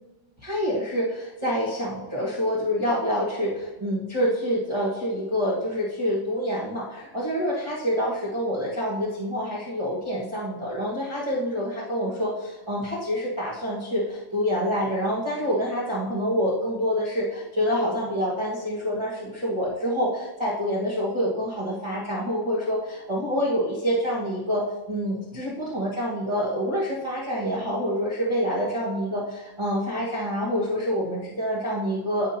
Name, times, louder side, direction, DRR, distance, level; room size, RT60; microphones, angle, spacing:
voice 1, 0.4-32.3, equal, 15° right, -8 dB, 1.6 m, -27 dB
15.5 x 6.1 x 2.9 m, 1.1 s
omnidirectional pair, 2.2 m